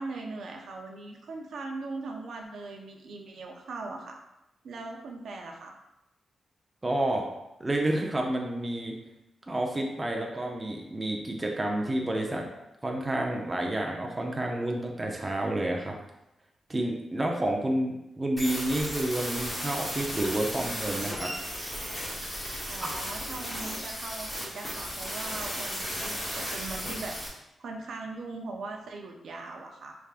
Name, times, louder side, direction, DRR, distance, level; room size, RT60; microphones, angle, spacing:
voice 1, 0.0-4.2 4.6-5.8 22.7-27.2 27.6-30.0, right 3 dB, 70° right, 1 dB, 0.6 m, -40 dB
voice 2, 6.8-7.3 7.6-8.9 9.5-12.5 12.8-16.0 16.7-21.3 22.8-22.9, right 1 dB, 15° right, 0 dB, 0.5 m, -29 dB
sound 1, 18.4-27.3, equal, 10° left, 1.1 m, -35 dB
4.6 x 3.4 x 2.4 m, 0.90 s
wide cardioid pair, 140°, 0 cm